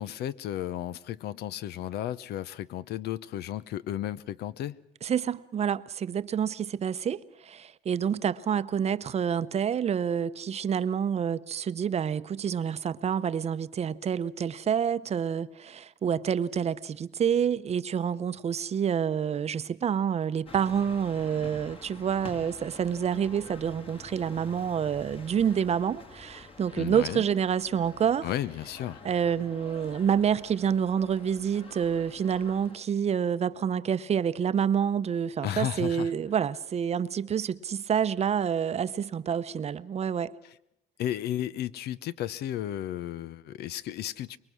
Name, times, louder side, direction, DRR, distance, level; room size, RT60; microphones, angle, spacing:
voice 1, 0.0-4.8 26.8-27.2 28.2-29.0 35.4-36.1 41.0-44.4, left 12 dB, 75° left, 0.8 m, -33 dB
voice 2, 5.0-28.3 29.0-40.3, right 8 dB, 40° right, 0.8 m, -28 dB
sound 1, 20.5-32.8, left 3 dB, 35° left, 2.2 m, -48 dB
24.5 x 22.5 x 6.2 m
cardioid pair, 110°, 17 cm